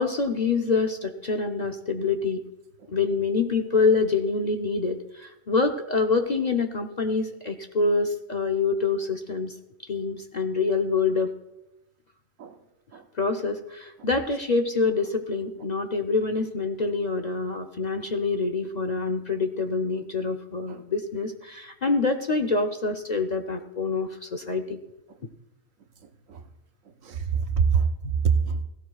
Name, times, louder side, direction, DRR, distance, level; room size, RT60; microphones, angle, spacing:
voice 1, 0.0-2.4 2.9-9.5 9.8-11.3 13.1-24.8, left 4 dB, 45° left, 4 dB, 0.6 m, -26 dB
voice 2, 27.0-28.6, right 6 dB, 85° right, 7 dB, 1.3 m, -25 dB
16.5 x 16.5 x 2.3 m, 0.98 s
omnidirectional pair, 1.3 m